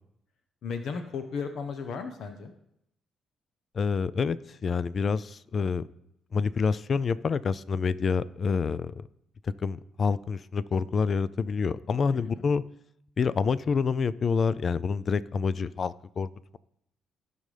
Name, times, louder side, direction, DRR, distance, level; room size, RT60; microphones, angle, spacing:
voice 1, 0.6-2.5 12.1-12.5, left 5 dB, 70° left, 7 dB, 0.8 m, -35 dB
voice 2, 3.7-5.8 6.3-9.1 9.4-12.6 13.2-16.6, left 5 dB, 45° left, 17 dB, 0.4 m, -27 dB
16.0 x 5.4 x 3.3 m, 0.77 s
cardioid pair, 90°, 0 cm